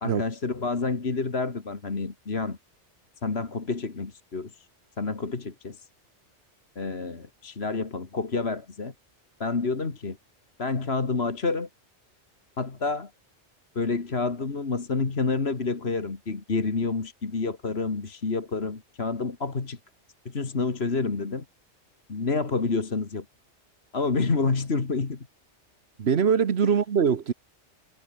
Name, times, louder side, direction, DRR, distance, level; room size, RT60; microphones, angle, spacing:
voice 1, 0.0-2.6 3.2-4.7 5.0-5.9 6.8-8.9 9.4-10.2 10.6-11.7 12.6-13.1 13.8-19.8 20.3-21.4 22.1-23.3 23.9-25.3 26.6-26.7, left 4 dB, 60° left, 2.4 m, -28 dB
voice 2, 26.0-27.3, right 7 dB, 65° right, 1.3 m, -22 dB
omnidirectional pair, 1.2 m